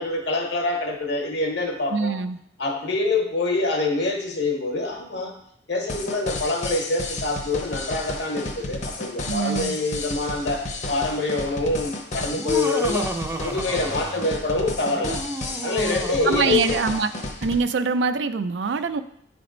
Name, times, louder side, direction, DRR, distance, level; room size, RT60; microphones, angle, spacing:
voice 1, 0.0-2.2 2.6-5.3 5.7-13.1 13.4-15.2 15.6-16.8, left 2 dB, 65° left, 2 dB, 1.2 m, -25 dB
voice 2, 1.9-2.4 9.3-9.8 16.2-17.1 17.4-19.0, right 5 dB, 75° right, 11 dB, 0.4 m, -24 dB
sound 1, 5.9-17.6, left 2 dB, 40° left, 0.8 m, -32 dB
Laughter, 12.3-14.4 14.9-17.2, right 2 dB, 15° right, 0.5 m, -32 dB
9.3 x 3.4 x 3.9 m, 0.69 s
head